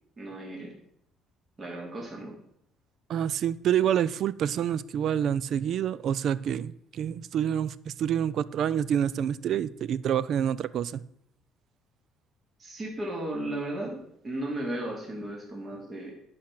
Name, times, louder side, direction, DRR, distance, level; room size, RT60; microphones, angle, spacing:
voice 1, 0.2-0.8 1.6-2.3 12.6-16.1, right 1 dB, 30° right, 0 dB, 2.9 m, -35 dB
voice 2, 3.1-11.0, right 9 dB, 60° right, 18 dB, 0.4 m, -27 dB
10.0 x 5.9 x 6.0 m, 0.73 s
cardioid pair, 105°, 0 cm